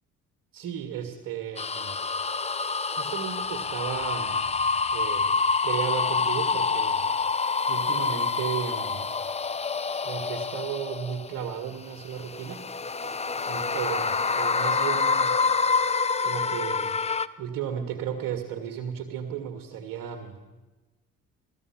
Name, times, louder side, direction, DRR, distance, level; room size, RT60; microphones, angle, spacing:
voice 1, 0.5-2.0 2.9-4.4 4.9-5.4 5.6-7.1 7.7-9.1 10.0-12.7 13.4-15.4 16.2-17.0 17.4-20.4, right 9 dB, 65° right, 5 dB, 1.9 m, -34 dB
sound 1, 1.6-11.5 12.0-17.3, left 4 dB, 15° left, 0.6 m, -27 dB
16.0 x 14.0 x 6.0 m, 1.2 s
hypercardioid pair, 50°, 37 cm